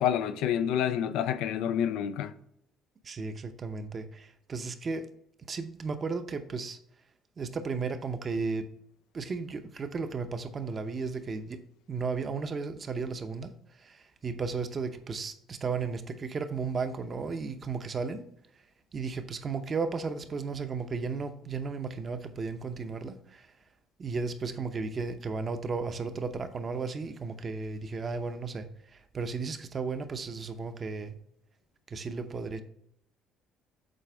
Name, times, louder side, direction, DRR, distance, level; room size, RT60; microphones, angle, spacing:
voice 1, 0.0-2.3, left 9 dB, 80° left, 0.4 m, -28 dB
voice 2, 3.0-5.1 5.5-6.8 7.4-8.7 9.1-11.6 11.9-18.2 18.5-18.6 18.9-23.5 24.0-31.2 31.9-32.6, right 4 dB, 35° right, 0.7 m, -34 dB
7.7 x 4.1 x 3.4 m
cardioid pair, 95°, 0 cm